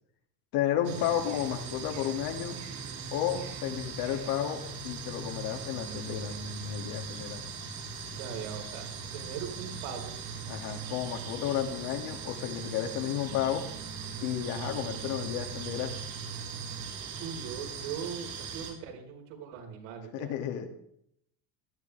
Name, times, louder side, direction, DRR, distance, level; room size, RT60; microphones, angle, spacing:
voice 1, 0.5-2.6 3.1-7.4 10.5-13.6 14.2-16.0 20.1-20.7, left 10 dB, 65° left, 3 dB, 2.6 m, -32 dB
sound 1, 0.8-18.7, right 5 dB, 60° right, 4.8 m, -40 dB
voice 2, 8.2-8.9 9.1-10.1 17.2-20.3, right 7 dB, 85° right, 2 dB, 4.8 m, -40 dB
18.5 x 14.0 x 3.5 m, 0.72 s
cardioid pair, 140°, 39 cm